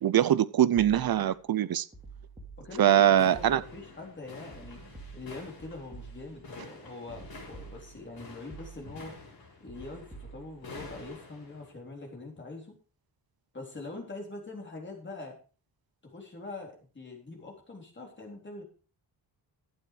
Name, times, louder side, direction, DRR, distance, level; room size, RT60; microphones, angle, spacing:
voice 1, 0.0-1.9 2.8-3.6, right 11 dB, 60° right, 0.7 m, -23 dB
sound 1, 0.8-1.4 1.9-3.0 3.3-4.0 4.5-6.5 7.1-8.1 8.5-9.1 9.7-11.1, right 4 dB, 10° right, 2.9 m, -49 dB
voice 2, 2.6-4.8 5.1-9.1 9.6-12.8 13.5-15.3 16.0-18.6, left 3 dB, 25° left, 3.8 m, -43 dB
sound 2, 3.1-11.7, left 3 dB, 55° left, 4.5 m, -49 dB
12.0 x 8.9 x 4.8 m
wide cardioid pair, 160°, 42 cm